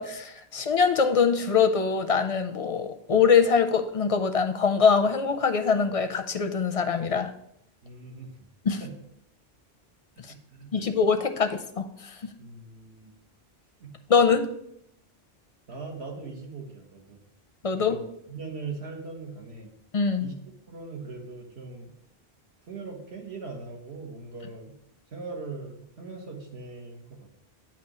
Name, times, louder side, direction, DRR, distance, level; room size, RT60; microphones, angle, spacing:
voice 1, 0.0-7.3 8.6-8.8 10.7-12.2 14.1-14.5 17.6-18.0 19.9-20.3, left 6 dB, 45° left, 8 dB, 0.5 m, -23 dB
voice 2, 7.8-8.5 8.8-8.9 10.3-10.9 12.4-13.1 13.8-13.9 15.7-17.2 17.7-19.7 20.2-21.9 22.7-24.7 25.1-27.3, right 4 dB, 80° right, 1 dB, 1.5 m, -40 dB
8.8 x 3.0 x 6.0 m, 0.76 s
omnidirectional pair, 1.1 m